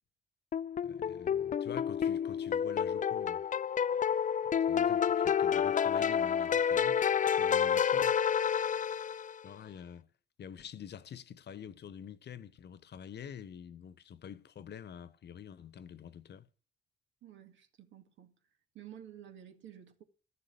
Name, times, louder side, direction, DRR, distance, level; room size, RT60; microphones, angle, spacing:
sound 1, 0.5-9.4, left 8 dB, 40° left, 0.5 m, -29 dB
voice 1, 0.8-3.5 4.5-7.0 7.4-8.2 9.4-10.1 10.4-16.5, left 8 dB, 55° left, 1.2 m, -47 dB
voice 2, 17.2-18.4 18.7-20.0, right 10 dB, 65° right, 2.3 m, -52 dB
14.0 x 7.0 x 8.4 m
hypercardioid pair, 45°, 21 cm